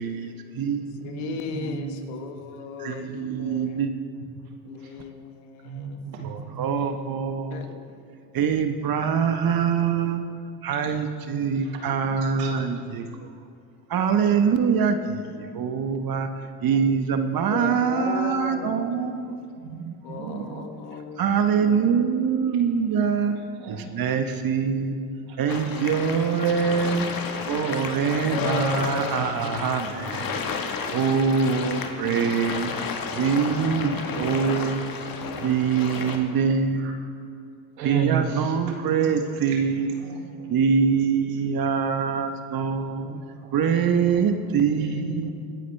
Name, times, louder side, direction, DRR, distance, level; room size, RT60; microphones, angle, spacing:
voice 1, 0.0-2.3 2.8-3.9 6.2-7.7 8.3-10.2 10.6-13.0 13.9-16.3 16.6-19.3 19.6-20.7 21.2-23.4 23.7-25.0 25.4-27.1 27.5-30.3 30.9-32.7 33.1-34.9 35.4-37.1 37.8-40.0 40.5-43.1 43.5-45.3, right 6 dB, 45° right, 7 dB, 1.4 m, -24 dB
voice 2, 1.0-3.9 4.6-6.1 7.5-7.8 16.1-16.2 16.7-16.8 17.5-19.3 20.0-21.2 26.7-26.9 27.7-27.8 28.3-29.2, left 6 dB, 70° left, 6 dB, 1.6 m, -36 dB
voice 3, 2.9-3.5 4.8-4.9 5.6-6.9 11.6-11.8 12.4-12.5 15.2-15.8 19.6-20.7 23.6-23.9 25.2-27.3 29.3-29.5 30.0-30.2 30.9-31.0 32.7-32.8 35.3-35.5 36.1-36.4 36.8-36.9 37.8-38.8 39.5-39.6 40.0-40.7 42.6-44.3 44.6-45.3, right 6 dB, 85° right, 2 dB, 2.1 m, -36 dB
sound 1, 25.5-36.2, left 5 dB, 45° left, 1.7 m, -32 dB
24.0 x 9.3 x 3.5 m, 2.4 s
hypercardioid pair, 75°, 49 cm